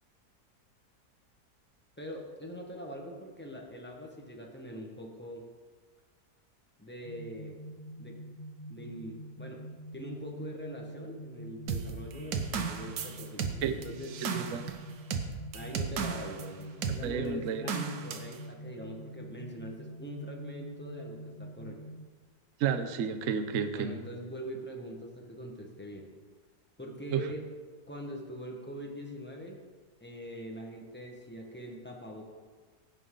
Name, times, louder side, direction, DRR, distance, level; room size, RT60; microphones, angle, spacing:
voice 1, 2.0-5.4 6.8-7.6 8.0-8.2 8.7-9.6 9.9-14.1 15.5-21.8 23.7-26.1 26.8-27.4 27.9-29.6 30.0-32.2, equal, 10° left, 0 dB, 1.0 m, -43 dB
sound 1, 7.0-22.1, equal, 50° left, 0.8 m, -46 dB
sound 2, 11.7-16.5 16.8-17.0 17.7-18.4, right 6 dB, 85° right, 1.4 m, -34 dB
voice 2, 14.2-14.6 17.0-17.6 22.6-24.0 27.1-27.2, right 7 dB, 60° right, 8 dB, 0.9 m, -31 dB
16.5 x 5.5 x 3.8 m, 1.4 s
omnidirectional pair, 1.8 m